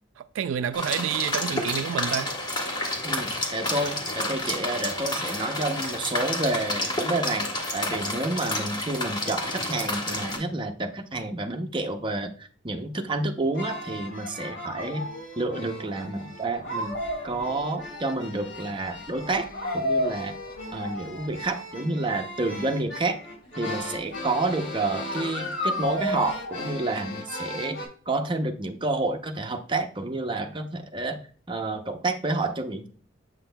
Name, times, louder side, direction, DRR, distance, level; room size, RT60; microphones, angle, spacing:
voice 1, 0.2-2.3, right 8 dB, 85° right, 0.3 m, -29 dB
sound 1, 0.7-10.4, left 1 dB, 25° left, 1.2 m, -30 dB
voice 2, 3.0-15.1 15.4-17.0 17.2-20.4 20.7-23.2 23.6-27.8 28.1-31.2 31.5-32.9, right 2 dB, 25° right, 0.7 m, -29 dB
sound 2, 13.5-27.9, left 1 dB, 75° left, 3.5 m, -34 dB
7.9 x 5.9 x 2.2 m
head